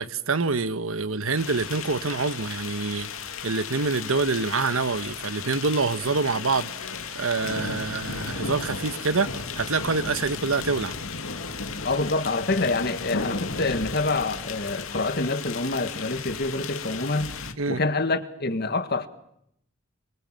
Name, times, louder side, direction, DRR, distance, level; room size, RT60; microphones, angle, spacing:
voice 1, 0.0-3.1 3.4-10.9 17.6-17.8, right 4 dB, 80° right, 1.2 m, -26 dB
sound 1, 1.4-17.5, left 5 dB, 80° left, 2.3 m, -35 dB
voice 2, 11.8-17.3 17.7-19.1, left 2 dB, 50° left, 1.8 m, -26 dB
28.5 x 24.0 x 7.6 m
head